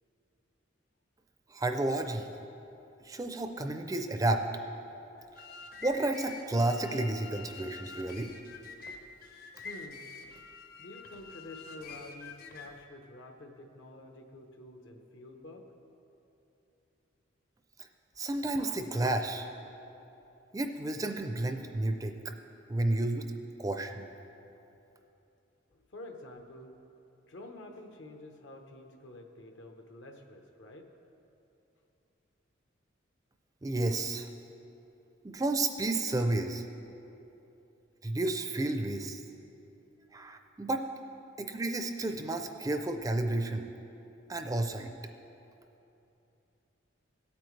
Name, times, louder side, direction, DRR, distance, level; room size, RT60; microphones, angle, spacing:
voice 1, 1.5-2.3 3.0-4.4 5.8-8.3 17.8-17.9 18.2-19.5 20.5-22.3 22.7-23.2 23.6-24.1 33.6-34.3 35.2-36.6 38.0-39.2 40.1-40.8 41.4-43.7 44.3-44.9, right 2 dB, 20° right, 6 dB, 0.4 m, -31 dB
sound 1, 5.2-12.8, left 4 dB, 50° left, 0.8 m, -47 dB
voice 2, 9.6-10.1 10.8-15.7 18.1-18.3 18.6-18.8 25.7-26.8 27.3-30.9, left 1 dB, 70° left, 4 dB, 1.0 m, -49 dB
17.0 x 8.7 x 3.2 m, 2.9 s
head